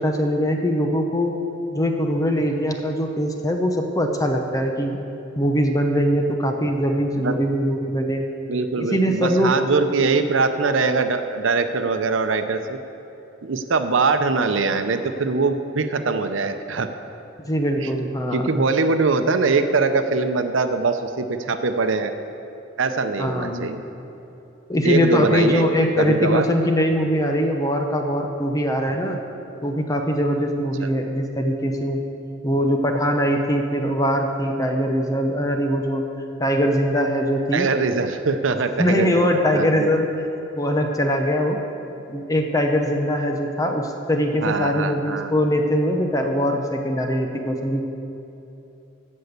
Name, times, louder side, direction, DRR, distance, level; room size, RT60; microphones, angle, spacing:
voice 1, 0.0-1.3 1.7-5.0 5.4-8.2 8.8-9.6 17.5-18.7 23.2-23.7 24.7-29.2 29.6-32.0 32.4-36.1 36.4-37.7 38.8-40.1 40.6-41.6 42.1-47.8, equal, 20° left, 3 dB, 0.8 m, -22 dB
voice 2, 8.5-12.8 13.4-16.9 17.8-17.9 18.3-22.1 22.8-23.8 24.8-25.7 26.0-26.5 30.8-30.9 37.5-39.9 44.4-45.3, right 4 dB, 85° right, 8 dB, 0.7 m, -22 dB
14.5 x 5.5 x 8.0 m, 2.9 s
head